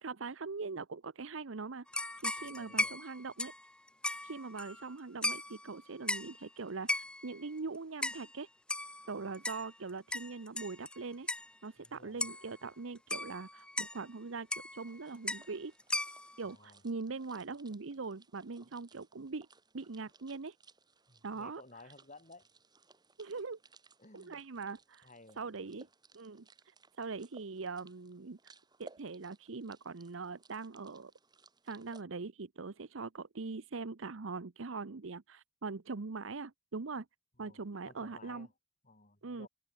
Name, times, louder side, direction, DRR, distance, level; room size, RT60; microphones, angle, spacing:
voice 1, 0.0-1.9 2.2-3.5 4.2-8.5 9.0-11.3 11.6-15.7 16.4-19.5 19.7-20.6 21.2-21.6 23.2-23.6 24.1-25.1 25.4-25.9 26.1-28.4 28.8-31.1 31.6-37.1 37.4-38.5 39.2-39.5, right 4 dB, 75° right, 0.8 m, -42 dB
sound 1, 1.9-4.9 5.2-5.7 6.1-6.4 6.9-7.4 8.0-8.3 8.7-11.0 11.3-11.5 11.8-11.9 12.2-12.5 13.1-14.0 14.5-14.9 15.3-15.5 15.8-16.4, left 2 dB, 5° left, 0.6 m, -37 dB
voice 2, 2.4-3.0 11.8-12.2 16.4-16.8 21.1-22.5 24.0-24.4 25.0-25.8 37.4-38.5 38.8-39.5, left 2 dB, 40° left, 5.5 m, -57 dB
sound 2, 14.8-32.0, right 3 dB, 20° right, 2.8 m, -62 dB
open air
head